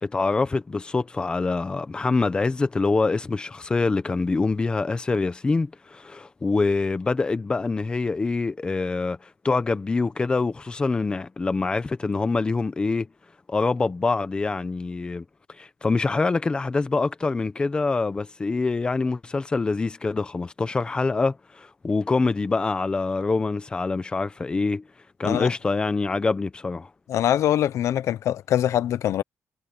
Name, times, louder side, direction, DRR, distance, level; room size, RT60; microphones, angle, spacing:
voice 1, 0.0-13.1 13.5-15.2 15.6-24.8 25.2-26.9, left 3 dB, 20° left, 0.8 m, -25 dB
voice 2, 27.1-29.2, left 11 dB, 70° left, 0.7 m, -23 dB
wide cardioid pair, 180°, 5 cm